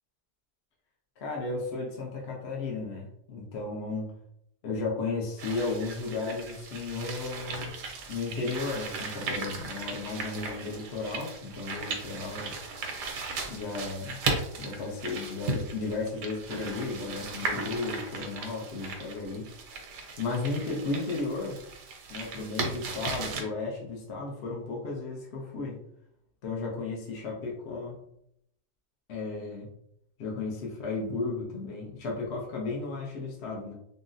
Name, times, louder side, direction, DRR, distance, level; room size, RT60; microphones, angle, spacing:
voice 1, 1.2-4.1 4.6-7.8 8.1-12.5 13.5-14.2 14.6-19.5 20.2-21.6 22.1-25.8 26.4-28.0 29.1-29.7 30.2-33.7, left 3 dB, 60° left, -2 dB, 0.7 m, -34 dB
sound 1, 5.4-23.4, right 3 dB, 90° right, 1.3 m, -37 dB
3.8 x 2.1 x 2.5 m, 0.73 s
omnidirectional pair, 1.8 m